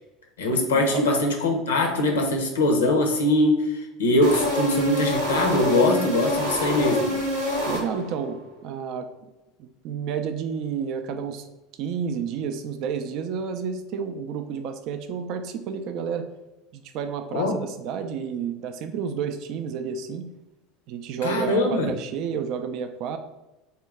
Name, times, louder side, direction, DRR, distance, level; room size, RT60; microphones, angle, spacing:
voice 1, 0.4-7.1 17.3-17.6 21.2-21.9, left 1 dB, 85° left, 2 dB, 0.6 m, -22 dB
sound 1, 4.2-8.3, left 1 dB, 85° right, 0.8 m, -26 dB
voice 2, 7.7-9.1 9.6-11.5 11.8-16.3 16.7-20.3 20.9-23.2, right 6 dB, 55° right, 7 dB, 0.3 m, -30 dB
3.6 x 2.2 x 3.5 m, 0.97 s
hypercardioid pair, 75°, 0 cm